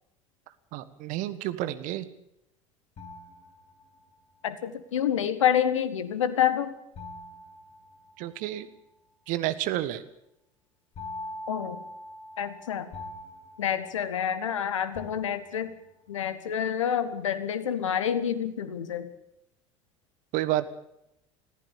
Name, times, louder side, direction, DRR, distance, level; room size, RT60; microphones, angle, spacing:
voice 1, 0.7-2.1 8.2-8.7 9.3-10.0 20.3-20.7, right 14 dB, 50° right, 14 dB, 1.5 m, -30 dB
sound 1, 3.0-4.2 7.0-8.6 11.0-14.5 15.0-15.9, left 1 dB, 35° left, 3.8 m, -43 dB
voice 2, 4.4-6.7 11.5-11.8 12.4-12.9 13.6-15.7 16.1-19.1, left 9 dB, 75° left, 13 dB, 1.6 m, -28 dB
20.5 x 15.0 x 8.5 m, 0.82 s
figure-of-eight pair, 65°, 16 cm